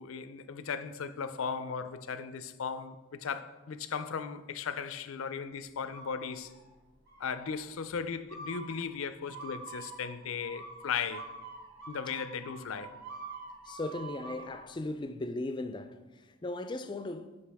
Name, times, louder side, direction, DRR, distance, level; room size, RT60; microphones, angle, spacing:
voice 1, 0.0-6.5 7.2-11.3 11.9-12.9, left 6 dB, 85° left, 0.5 m, -37 dB
sound 1, 5.9-6.7 7.1-7.6 8.3-14.6, right 3 dB, 50° right, 2.1 m, -46 dB
voice 2, 13.7-17.4, left 2 dB, 20° left, 0.3 m, -37 dB
9.6 x 5.3 x 3.5 m
head